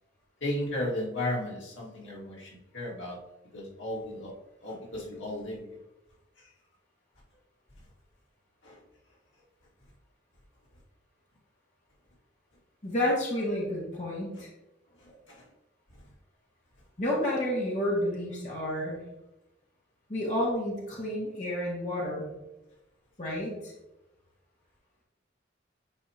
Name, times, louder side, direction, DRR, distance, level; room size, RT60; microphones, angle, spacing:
voice 1, 0.4-3.2 3.5-4.3 4.6-5.6 8.6-8.8 15.3-15.4, left 1 dB, 85° left, -4 dB, 2.2 m, -34 dB
voice 2, 12.8-14.5 17.0-19.0 20.1-22.3 23.2-23.7, left 1 dB, 40° left, -4 dB, 2.0 m, -30 dB
9.6 x 4.5 x 2.9 m, 0.94 s
head